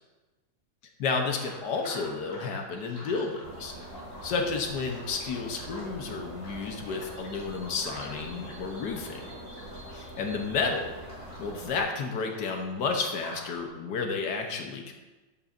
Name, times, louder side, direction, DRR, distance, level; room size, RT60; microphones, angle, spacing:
voice 1, 1.0-3.7 4.2-9.2 9.9-10.9 11.4-14.9, left 4 dB, 80° left, 3 dB, 1.7 m, -31 dB
sound 1, 1.1-13.7, left 1 dB, 50° left, 3.3 m, -49 dB
sound 2, 3.4-11.8, right 1 dB, 45° right, 3.3 m, -43 dB
11.5 x 8.8 x 2.7 m, 1.2 s
omnidirectional pair, 1.8 m